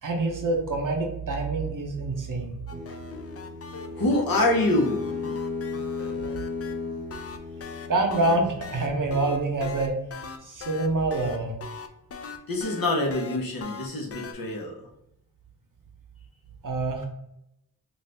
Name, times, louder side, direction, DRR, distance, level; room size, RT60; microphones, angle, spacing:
voice 1, 0.0-2.6 7.9-9.9 10.4-11.6 16.6-17.1, right 2 dB, 60° right, 3 dB, 0.7 m, -26 dB
sound 1, 2.7-6.7 7.1-14.3, left 5 dB, 45° left, 0.4 m, -41 dB
sound 2, 2.7-9.3, left 4 dB, 20° right, 0.7 m, -35 dB
voice 2, 4.0-5.0 12.5-14.9, left 2 dB, 70° left, 1 dB, 0.8 m, -25 dB
2.6 x 2.4 x 3.2 m, 0.80 s
cardioid pair, 45°, 36 cm